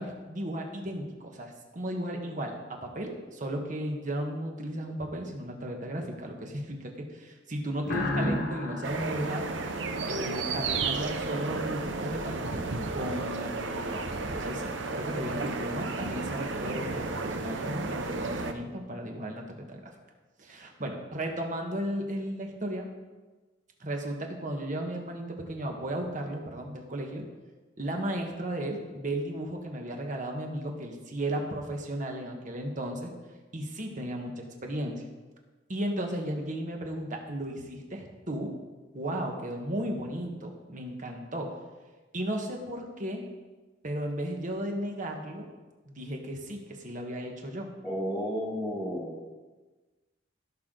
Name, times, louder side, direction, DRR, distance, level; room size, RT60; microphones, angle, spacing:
voice 1, 0.0-9.4 10.1-12.6 12.9-19.9 20.4-22.9 23.8-27.2 27.8-33.1 33.5-35.0 35.7-38.5 38.9-41.5 42.1-43.2 43.8-45.5 45.9-47.7, right 1 dB, 45° right, 2 dB, 1.5 m, -35 dB
sound 1, 7.8-10.5, left 1 dB, 65° left, 1.5 m, -33 dB
sound 2, 8.8-18.5, right 3 dB, 80° right, 0.9 m, -33 dB
voice 2, 47.8-49.4, equal, 10° right, -6 dB, 1.3 m, -32 dB
16.0 x 6.5 x 3.9 m, 1.3 s
head